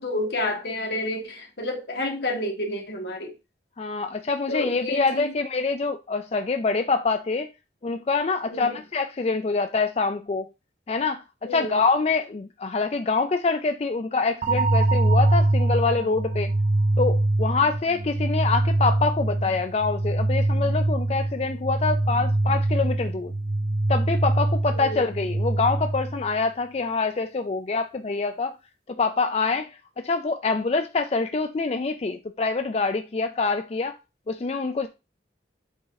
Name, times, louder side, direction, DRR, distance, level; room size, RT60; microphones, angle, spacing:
voice 1, 0.0-3.3 4.5-5.3 8.5-8.8 11.5-11.8 24.7-25.0, left 1 dB, 70° left, 1.8 m, -30 dB
voice 2, 3.8-7.5 7.8-10.5 10.9-11.2 11.5-16.5 17.0-23.3 23.9-28.6 29.0-29.7 30.0-34.0 34.3-34.9, left 4 dB, 35° left, 0.4 m, -25 dB
sound 1, 14.4-26.4, right 2 dB, 45° right, 0.6 m, -24 dB
7.9 x 3.7 x 4.0 m
head